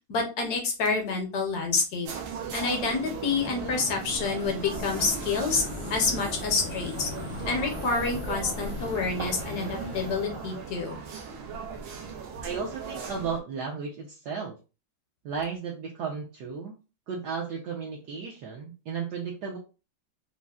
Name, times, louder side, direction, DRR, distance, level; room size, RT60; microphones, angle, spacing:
voice 1, 0.1-2.1 2.5-5.6 5.9-7.1 7.5-11.0, left 4 dB, 65° left, 2 dB, 1.1 m, -28 dB
sound 1, 2.1-13.4, right 5 dB, 90° right, 1.4 m, -38 dB
sound 2, 3.3-10.1, left 4 dB, 80° left, 1.3 m, -41 dB
sound 3, 4.6-10.7, equal, 55° right, 0.6 m, -42 dB
voice 2, 12.4-14.5 15.2-16.8 17.1-19.6, right 5 dB, 70° right, -1 dB, 1.0 m, -34 dB
3.9 x 2.0 x 2.3 m, 0.31 s
omnidirectional pair, 2.1 m